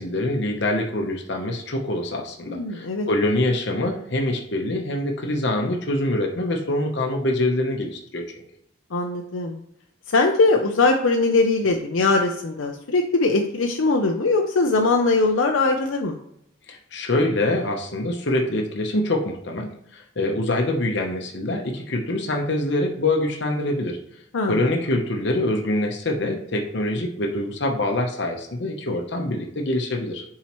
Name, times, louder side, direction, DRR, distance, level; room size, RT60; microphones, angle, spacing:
voice 1, 0.0-8.4 16.7-24.0 24.4-30.2, left 1 dB, 60° left, 2 dB, 0.9 m, -25 dB
voice 2, 2.5-3.1 8.9-9.6 10.1-16.2 24.3-24.7, left 3 dB, 80° left, 3 dB, 0.6 m, -21 dB
7.2 x 4.7 x 3.0 m, 0.75 s
head